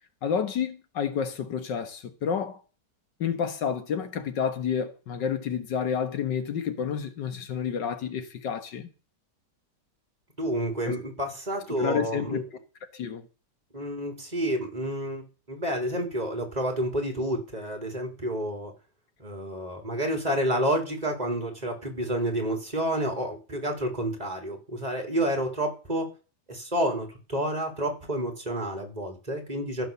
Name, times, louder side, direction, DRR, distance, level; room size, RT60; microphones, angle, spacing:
voice 1, 0.2-2.6 3.2-8.9 10.9-11.0 11.8-12.4 12.9-13.3, left 7 dB, 85° left, 1.9 m, -30 dB
voice 2, 10.4-12.4 13.7-15.2 15.5-18.7 19.2-26.1 26.5-29.9, right 1 dB, 20° right, 3.7 m, -29 dB
15.5 x 7.0 x 6.9 m
omnidirectional pair, 1.9 m